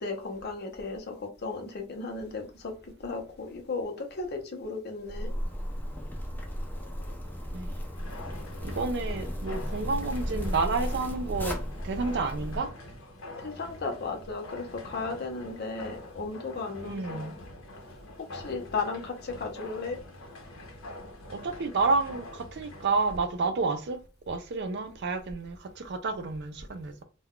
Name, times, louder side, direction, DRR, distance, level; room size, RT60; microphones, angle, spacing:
voice 1, 0.0-5.3 13.4-17.3 18.3-20.0, left 4 dB, 55° left, 0.7 m, -35 dB
Zipper (clothing), 5.0-12.6, equal, 10° left, 0.5 m, -35 dB
sound 1, 7.9-23.2, left 1 dB, 85° left, 0.8 m, -45 dB
voice 2, 8.6-11.6 11.8-12.7 16.8-17.3 21.3-27.0, right 3 dB, 60° right, 0.5 m, -30 dB
2.3 x 2.2 x 3.6 m
head